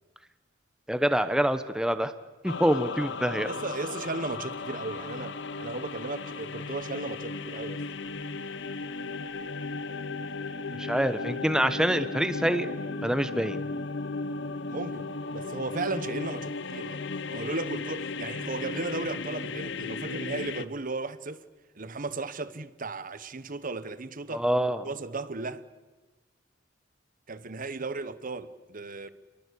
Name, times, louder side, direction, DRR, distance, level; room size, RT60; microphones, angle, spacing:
voice 1, 0.9-2.1 2.4-3.5 10.8-12.7 13.0-13.6 24.3-24.9, equal, 5° right, 1.0 m, -26 dB
sound 1, 2.5-20.7, left 3 dB, 65° left, 1.0 m, -36 dB
voice 2, 3.4-7.9 14.7-21.4 21.7-24.4 24.8-25.6 27.3-29.1, right 3 dB, 45° right, 1.1 m, -35 dB
29.5 x 22.0 x 8.5 m
head